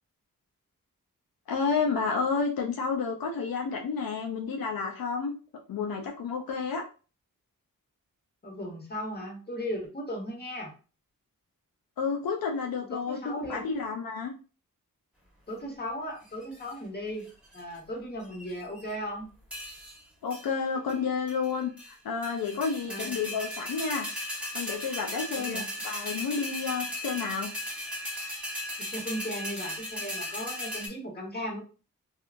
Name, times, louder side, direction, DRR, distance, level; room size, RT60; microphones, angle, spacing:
voice 1, 1.5-5.3 5.7-6.8 12.0-14.3 20.2-24.1 24.3-27.5, left 5 dB, 85° left, 2 dB, 0.5 m, -30 dB
voice 2, 8.4-10.7 12.9-13.6 15.5-19.3 22.9-23.1 25.3-25.7 28.9-31.6, equal, 30° left, -1 dB, 1.2 m, -37 dB
sound 1, 16.2-16.7 17.3-17.8 18.2-18.9 19.5-20.0 20.3-20.5 20.9-21.0 21.3-21.9 22.2-30.9, left 1 dB, 5° right, 1.2 m, -37 dB
2.8 x 2.4 x 2.5 m, 0.35 s
cardioid pair, 65°, 34 cm